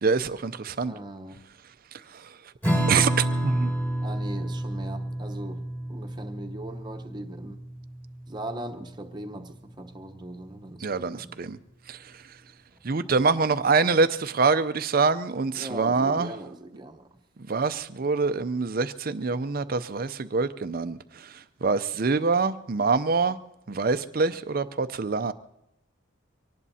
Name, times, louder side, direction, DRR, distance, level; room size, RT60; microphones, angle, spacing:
voice 1, 0.0-0.9 2.1-2.3 2.9-3.7 10.8-11.6 11.9-12.1 12.8-16.3 17.5-23.4 23.7-25.3, right 4 dB, 45° right, 0.5 m, -25 dB
voice 2, 0.8-1.4 4.0-5.6 5.9-7.6 8.3-10.9 11.1-11.3 15.5-17.1, right 1 dB, 20° right, 1.0 m, -39 dB
Strum, 2.6-9.5, right 1 dB, 10° left, 2.3 m, -30 dB
24.5 x 18.5 x 2.8 m
head